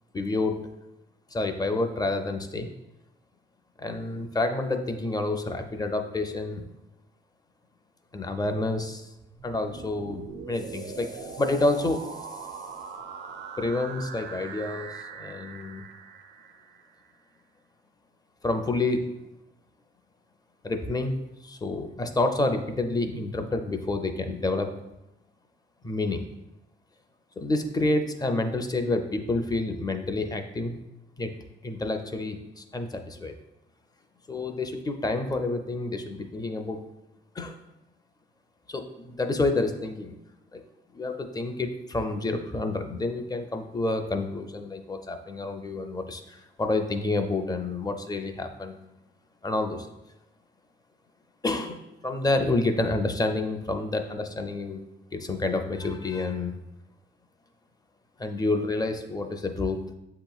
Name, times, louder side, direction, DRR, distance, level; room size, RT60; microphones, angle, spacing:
voice 1, 0.1-0.7 1.3-2.7 3.8-6.6 8.1-9.1 9.4-12.1 13.6-15.8 18.4-19.1 20.6-21.2 21.4-24.7 25.8-26.2 27.4-30.8 31.2-31.3 31.6-33.3 34.3-36.8 37.4-37.6 38.7-40.2 40.5-40.6 40.9-48.8 49.4-49.9 51.4-54.8 55.1-56.6 58.2-59.8, left 2 dB, 20° left, 6 dB, 0.5 m, -29 dB
sound 1, 9.2-17.1, right 6 dB, 60° right, 0.5 m, -41 dB
7.5 x 2.9 x 2.3 m, 0.90 s
cardioid pair, 90°, 20 cm